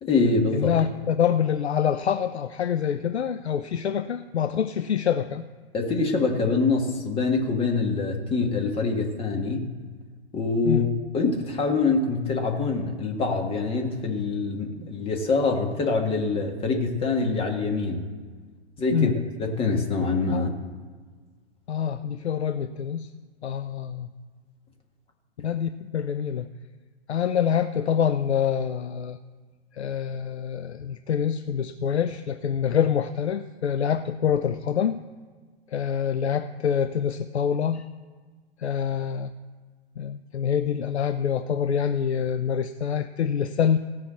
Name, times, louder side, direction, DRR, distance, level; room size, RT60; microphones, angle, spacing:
voice 1, 0.0-0.7 5.7-9.7 10.3-10.9 11.1-18.1 18.8-19.1 19.4-20.5, left 4 dB, 15° left, 2 dB, 1.7 m, -25 dB
voice 2, 0.5-5.5 10.6-10.9 18.9-19.1 20.3-20.4 21.7-23.1 23.4-24.1 25.4-26.5 27.1-29.2 29.7-35.0 35.7-37.8 38.6-39.3 40.0-43.8, left 8 dB, 75° left, 10 dB, 0.6 m, -26 dB
16.5 x 5.8 x 7.7 m, 1.5 s
figure-of-eight pair, 115°, 33 cm